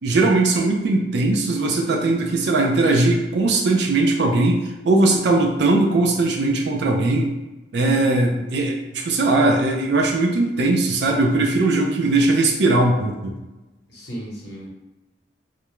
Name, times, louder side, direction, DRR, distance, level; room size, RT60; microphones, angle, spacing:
voice 1, 0.0-4.6 4.8-7.4 7.7-13.3, right 2 dB, 60° right, 1 dB, 0.4 m, -19 dB
voice 2, 13.9-14.7, right 1 dB, 60° left, -3 dB, 0.8 m, -34 dB
2.4 x 2.1 x 2.9 m, 1.1 s
head